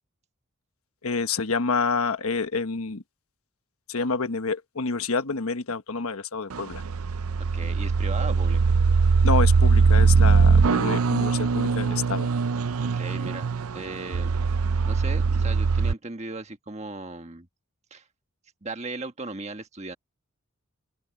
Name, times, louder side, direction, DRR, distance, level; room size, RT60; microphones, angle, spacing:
voice 1, 1.0-3.0 3.9-6.8 9.2-12.3, left 4 dB, 80° left, 1.2 m, -28 dB
sound 1, 6.5-15.9, right 4 dB, 85° right, 0.6 m, -21 dB
voice 2, 7.5-8.8 12.8-14.3 14.8-17.5 17.9-18.0 18.6-19.9, right 3 dB, 30° right, 1.4 m, -37 dB
open air
head